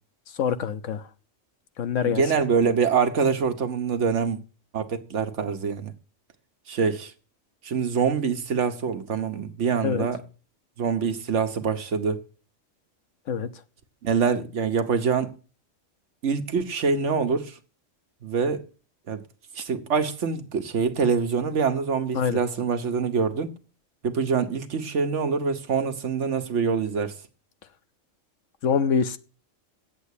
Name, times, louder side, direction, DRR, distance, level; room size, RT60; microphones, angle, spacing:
voice 1, 0.4-1.0 1.8-2.2 9.8-10.1 13.3-13.5 22.1-22.4 28.6-29.2, left 6 dB, 75° left, 1.2 m, -24 dB
voice 2, 2.0-4.4 4.7-5.9 6.7-7.1 7.6-10.2 10.8-12.2 14.0-15.3 16.2-17.6 18.2-18.6 19.1-19.2 19.5-23.5 24.0-27.1, right 5 dB, 70° right, 1.4 m, -25 dB
8.3 x 7.9 x 8.2 m
omnidirectional pair, 1.3 m